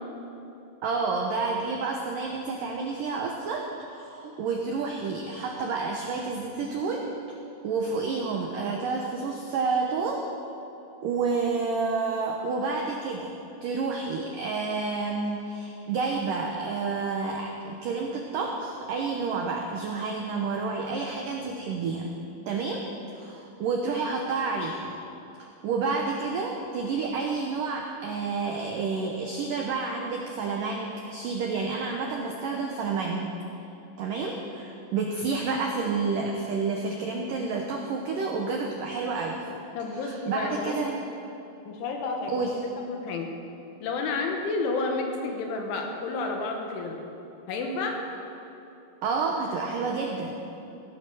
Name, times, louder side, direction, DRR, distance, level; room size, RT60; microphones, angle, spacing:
voice 1, 0.8-7.4 7.6-10.2 11.0-13.3 13.6-22.1 22.5-22.8 23.1-24.9 25.4-33.3 34.0-39.4 40.0-41.0 42.3-42.5 49.0-50.4, right 4 dB, 80° right, 1 dB, 1.9 m, -29 dB
voice 2, 39.8-40.8 41.7-42.5 42.8-43.3 43.8-47.0 47.5-48.0, left 3 dB, 80° left, 2 dB, 4.1 m, -30 dB
18.0 x 12.5 x 6.3 m, 3.0 s
omnidirectional pair, 5.5 m